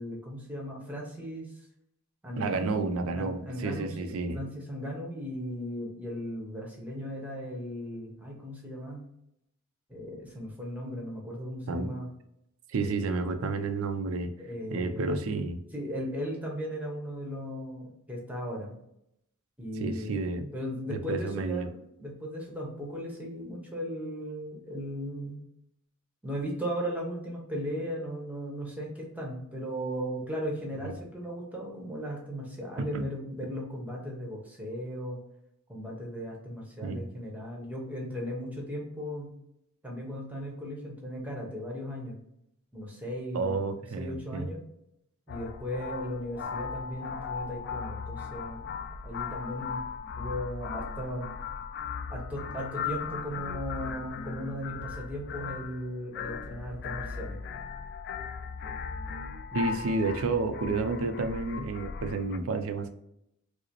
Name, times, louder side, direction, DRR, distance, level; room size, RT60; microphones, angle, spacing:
voice 1, 0.0-1.5 2.2-2.8 3.1-9.0 9.9-12.1 12.8-13.1 14.4-15.2 15.7-18.8 19.6-20.2 20.5-21.7 22.0-25.4 26.2-35.2 35.7-39.3 39.8-42.2 42.7-43.5 44.0-44.6 45.3-48.7 49.0-49.8 50.2-51.3 52.1-57.4 59.5-59.7, equal, 5° right, -2 dB, 0.9 m, -37 dB
voice 2, 2.4-4.4 11.7-11.9 12.7-14.3 14.7-15.6 19.8-20.5 20.9-21.7 30.8-30.9 32.8-33.0 36.8-37.0 43.3-44.5 59.5-62.9, right 3 dB, 75° right, 9 dB, 0.4 m, -31 dB
sound 1, 45.3-62.4, left 6 dB, 50° left, 0.3 m, -38 dB
4.8 x 2.0 x 2.9 m, 0.78 s
head